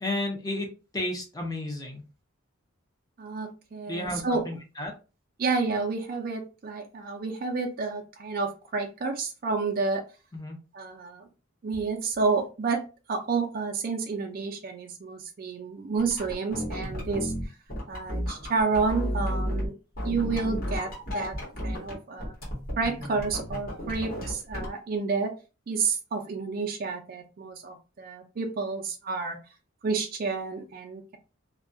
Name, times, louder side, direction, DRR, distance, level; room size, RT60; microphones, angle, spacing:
voice 1, 0.0-0.7 0.9-2.0 3.9-4.9 10.3-10.6, left 1 dB, 20° left, 2 dB, 0.5 m, -32 dB
voice 2, 3.2-4.4 5.4-10.0 10.7-11.3 11.6-12.8 13.1-17.3 17.9-19.7 20.0-22.3 22.8-25.3 25.7-29.4 29.8-31.2, right 4 dB, 45° right, 3 dB, 0.4 m, -30 dB
sound 1, 16.0-19.7 20.0-21.9 22.2-24.7, equal, 45° left, 1.1 m, -33 dB
2.3 x 2.2 x 2.5 m, 0.32 s
head